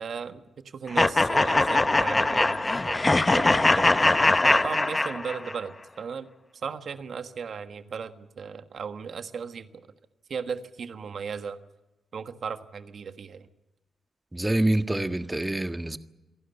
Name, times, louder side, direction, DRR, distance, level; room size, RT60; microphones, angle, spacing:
voice 1, 0.0-4.1 4.4-6.3 6.6-9.8 10.3-11.6 12.1-13.5, right 6 dB, 60° right, 1.5 m, -36 dB
sound 1, 1.0-5.6, left 2 dB, 25° left, 0.8 m, -22 dB
voice 2, 14.3-16.0, right 1 dB, 15° right, 1.6 m, -26 dB
27.5 x 11.5 x 9.8 m
supercardioid pair, 50°, 0 cm